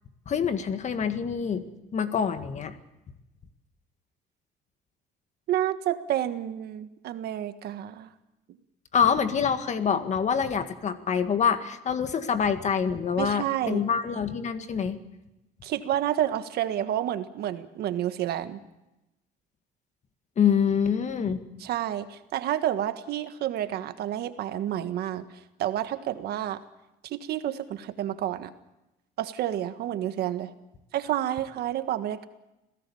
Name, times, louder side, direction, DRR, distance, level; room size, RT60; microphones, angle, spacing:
voice 1, 0.3-1.7 1.9-2.7 8.9-15.0 20.4-21.4, left 7 dB, 45° left, 9 dB, 1.9 m, -26 dB
voice 2, 5.5-8.1 13.2-13.8 15.6-18.6 21.6-26.6 27.0-28.5 29.2-30.5 30.9-32.2, right 12 dB, 70° right, 10 dB, 1.5 m, -29 dB
27.0 x 17.0 x 7.1 m, 0.95 s
cardioid pair, 110°, 17 cm